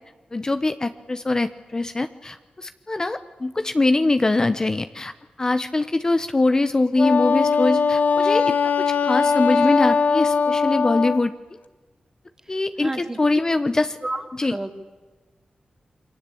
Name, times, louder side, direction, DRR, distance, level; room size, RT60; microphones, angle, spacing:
voice 1, 0.3-5.1 5.4-11.3 12.5-14.0 14.4-14.5, left 2 dB, 25° left, 10 dB, 0.9 m, -23 dB
Wind instrument woodwind instrument, 7.0-11.2, left 5 dB, 75° left, 1.4 m, -20 dB
voice 2, 12.8-13.2 14.0-14.7, right 2 dB, 20° right, 7 dB, 2.5 m, -31 dB
29.0 x 24.0 x 8.5 m, 1.3 s
wide cardioid pair, 130°, 3 cm